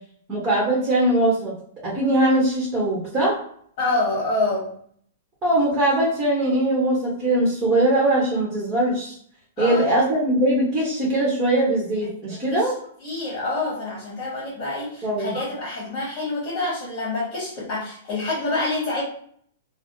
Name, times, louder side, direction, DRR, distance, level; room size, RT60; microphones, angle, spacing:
voice 1, 0.3-1.5 1.8-3.4 5.4-9.1 9.6-12.7 15.0-15.3, right 1 dB, 20° right, -5 dB, 1.0 m, -21 dB
voice 2, 3.8-4.7 9.6-10.0 12.5-12.6 13.0-19.0, left 2 dB, 40° left, -8 dB, 1.3 m, -27 dB
3.3 x 2.0 x 2.6 m, 0.62 s
hypercardioid pair, 145°, 0 cm